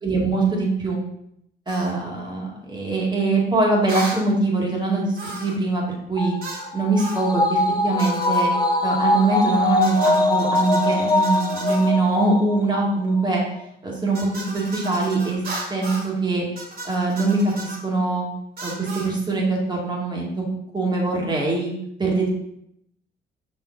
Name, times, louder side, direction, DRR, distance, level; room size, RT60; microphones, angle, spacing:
voice 1, 0.0-1.0 1.7-5.1 5.4-5.8 6.1-6.3 6.7-8.5 8.8-13.4 13.8-15.4 15.7-16.5 16.8-18.3 18.6-20.4 20.7-21.7 22.0-22.3, right 3 dB, 20° right, -2 dB, 2.1 m, -22 dB
sound 1, 1.7-1.9 3.9-4.2 5.2-5.6 6.4-6.7 7.0-7.3 8.0-8.5 9.8-11.9 14.1-16.1 16.6-17.8 18.6-19.1, right 2 dB, 50° right, 2.5 m, -35 dB
sound 2, 6.2-12.8 13.2-13.3, left 2 dB, 20° left, 0.6 m, -22 dB
5.9 x 4.4 x 3.9 m, 0.77 s
cardioid pair, 90°, 20 cm